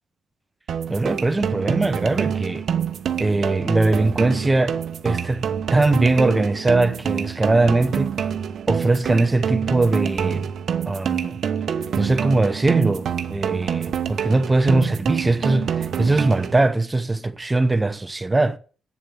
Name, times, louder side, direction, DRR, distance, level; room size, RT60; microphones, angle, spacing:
sound 1, 0.7-16.7, right 8 dB, 60° right, 1.0 m, -26 dB
voice 1, 0.9-2.6 3.2-8.1 8.7-10.5 10.8-11.4 12.0-18.6, right 2 dB, 15° right, 1.0 m, -21 dB
8.6 x 7.4 x 7.8 m
cardioid pair, 90°, 0 cm